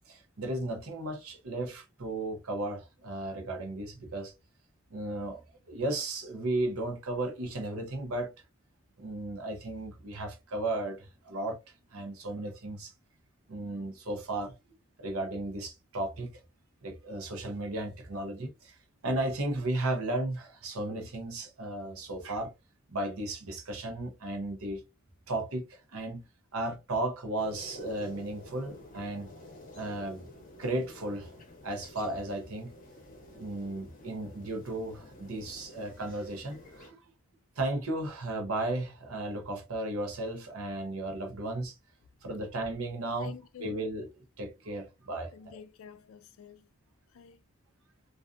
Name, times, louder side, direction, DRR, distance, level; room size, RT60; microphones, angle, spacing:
voice 1, 0.1-4.3 4.9-5.4 5.7-8.3 9.0-11.6 11.9-12.9 13.5-14.5 15.0-16.3 16.8-18.8 19.0-22.5 22.9-24.8 25.3-26.2 26.5-29.3 29.7-30.3 30.6-31.3 31.6-32.7 33.3-37.0 37.6-41.8 42.2-43.3 43.6-44.1 44.4-45.6, right 2 dB, 90° right, 0.8 m, -35 dB
sound 1, 27.4-36.9, left 1 dB, 40° left, 0.8 m, -50 dB
voice 2, 43.2-43.8 45.3-46.7 47.1-47.4, left 7 dB, 75° left, 0.3 m, -48 dB
2.5 x 2.4 x 2.4 m
head